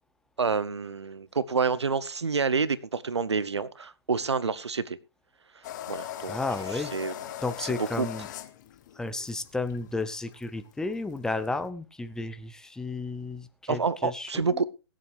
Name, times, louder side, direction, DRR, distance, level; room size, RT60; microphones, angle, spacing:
voice 1, 0.4-5.0 5.9-6.4 6.9-7.1 8.0-8.1 13.7-14.7, right 5 dB, 85° right, 0.9 m, -28 dB
sound 1, 5.6-11.7, left 12 dB, 40° left, 1.3 m, -40 dB
voice 2, 6.3-6.9 7.4-8.3 8.9-14.6, left 2 dB, 5° left, 0.7 m, -33 dB
22.5 x 7.6 x 3.4 m
figure-of-eight pair, 130°, 14 cm